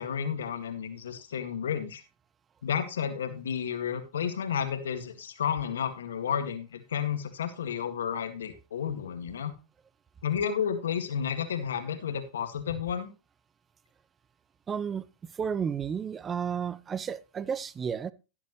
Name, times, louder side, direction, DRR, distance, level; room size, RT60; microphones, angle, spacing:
voice 1, 0.0-2.0 2.6-9.5 10.2-13.1, left 8 dB, 85° left, 1.8 m, -31 dB
voice 2, 14.7-18.1, right 7 dB, 25° right, 0.7 m, -32 dB
16.5 x 7.3 x 3.1 m
hypercardioid pair, 110°, 0 cm